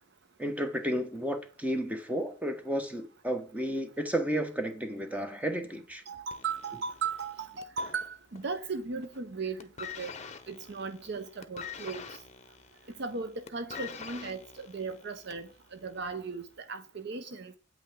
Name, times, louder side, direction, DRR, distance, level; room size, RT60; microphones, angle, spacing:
voice 1, 0.4-6.0, equal, 5° right, 1.1 m, -32 dB
voice 2, 6.1-10.1 10.5-12.0 13.0-17.5, right 4 dB, 55° right, 0.7 m, -37 dB
sound 1, 6.3-8.6 8.9-9.3 9.6-15.6 16.4-16.5, left 6 dB, 35° left, 0.9 m, -45 dB
9.0 x 8.6 x 3.7 m
head